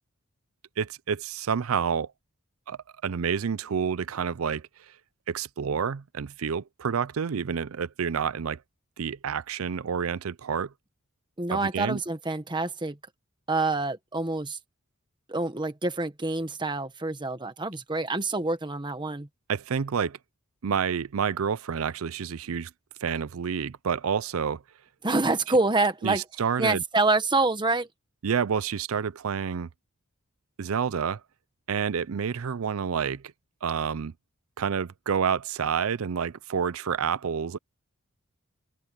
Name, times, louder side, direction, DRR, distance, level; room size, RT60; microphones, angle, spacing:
voice 1, 0.8-2.1 2.7-4.6 5.3-8.6 9.0-10.7 11.5-12.0 19.5-20.2 20.6-22.7 23.0-24.6 26.0-26.8 28.2-29.7 30.6-31.2 31.7-33.2 33.6-34.1 34.6-37.6, right 7 dB, 80° right, 0.5 m, -29 dB
voice 2, 11.4-13.0 13.5-14.6 15.3-19.3 25.0-26.2 26.6-27.9, right 3 dB, 20° right, 1.4 m, -26 dB
open air
head